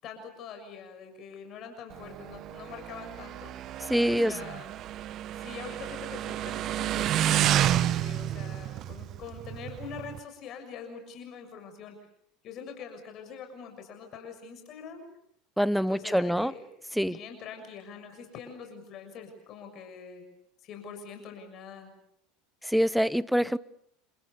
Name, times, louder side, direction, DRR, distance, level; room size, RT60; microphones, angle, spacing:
voice 1, 0.0-3.5 4.1-4.7 5.3-12.0 12.4-15.1 15.7-16.6 17.0-20.2 20.6-21.9, left 6 dB, 45° left, 6.9 m, -44 dB
Motorcycle, 1.9-10.2, right 12 dB, 45° right, 1.3 m, -30 dB
voice 2, 3.9-4.4 15.6-16.5 16.9-17.2 22.6-23.6, equal, ahead, 1.0 m, -25 dB
29.0 x 27.5 x 6.8 m
hypercardioid pair, 85°, 0 cm